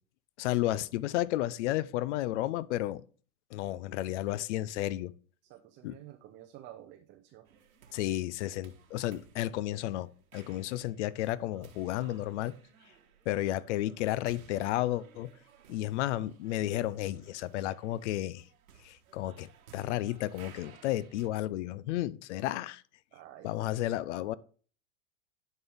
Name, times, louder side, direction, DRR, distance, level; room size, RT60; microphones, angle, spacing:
voice 1, 0.4-3.0 3.5-5.1 5.8-5.9 7.9-12.5 13.3-15.3 15.7-18.4 18.8-22.8 23.4-24.3, left 14 dB, 55° left, 0.6 m, -32 dB
voice 2, 5.4-7.6 23.1-23.7, right 12 dB, 25° right, 0.6 m, -51 dB
sound 1, 7.5-21.3, right 7 dB, 85° right, 1.5 m, -58 dB
10.5 x 4.5 x 3.5 m
hypercardioid pair, 120°, 42 cm